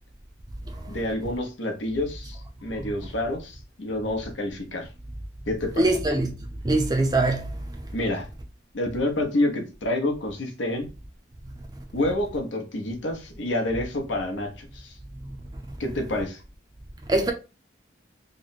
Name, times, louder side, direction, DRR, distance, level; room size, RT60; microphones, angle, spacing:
voice 1, 0.9-4.9 5.5-5.9 7.9-8.3 8.7-10.9 11.9-15.0 15.8-16.4, left 1 dB, 75° left, 0.8 m, -28 dB
voice 2, 5.8-6.3 6.6-7.5 17.1-17.3, right 2 dB, 20° right, 0.5 m, -22 dB
3.1 x 2.1 x 3.9 m
head